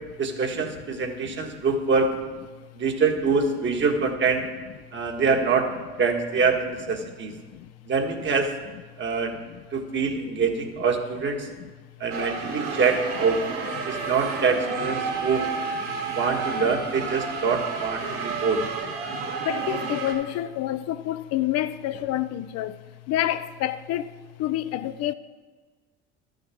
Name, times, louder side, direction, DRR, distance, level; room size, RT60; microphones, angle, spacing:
voice 1, 0.2-2.2 2.7-4.5 4.9-7.3 7.9-8.5 9.0-9.3 9.7-11.5 12.0-13.4 13.8-15.5 16.1-18.6, right 5 dB, 40° right, 1.4 m, -25 dB
voice 2, 1.2-1.7 7.0-7.1 7.5-7.7 9.5-9.6 11.6-11.7 12.5-12.7 15.2-15.3 18.2-18.4 19.4-22.8 23.1-25.1, left 13 dB, 55° left, 0.5 m, -29 dB
sound 1, 12.1-20.1, right 4 dB, 75° right, 2.2 m, -31 dB
12.5 x 6.4 x 4.8 m
hypercardioid pair, 70°, 31 cm